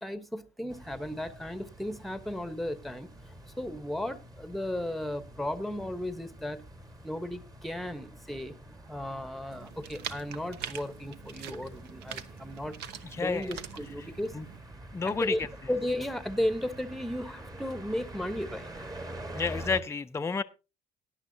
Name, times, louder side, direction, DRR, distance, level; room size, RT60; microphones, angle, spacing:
voice 1, 0.0-3.1 3.6-6.6 7.0-8.6 8.8-12.7 13.2-14.4 15.0-15.4 15.7-18.9, left 1 dB, ahead, 1.0 m, -35 dB
sound 1, 0.7-19.8, right 1 dB, 20° right, 1.5 m, -46 dB
sound 2, 9.5-14.6, right 9 dB, 80° right, 1.0 m, -44 dB
voice 2, 13.0-13.6 14.3-14.5 14.9-15.5 19.3-20.4, left 4 dB, 15° left, 0.6 m, -30 dB
17.5 x 10.0 x 2.7 m
cardioid pair, 110°, 17 cm